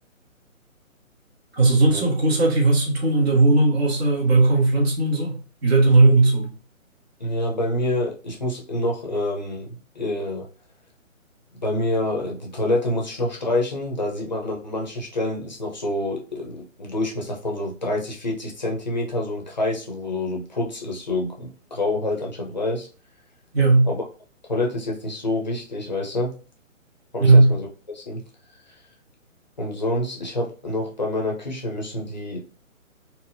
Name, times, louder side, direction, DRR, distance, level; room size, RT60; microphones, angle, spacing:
voice 1, 1.5-6.5 23.5-23.9 27.2-27.5, right 2 dB, 50° right, -3 dB, 1.5 m, -17 dB
voice 2, 7.2-10.5 11.6-22.9 23.9-24.0 24.4-26.3 27.1-27.7 27.9-28.2 29.6-32.4, left 1 dB, 35° left, -1 dB, 0.6 m, -27 dB
4.1 x 2.0 x 2.6 m, 0.36 s
hypercardioid pair, 175°, 41 cm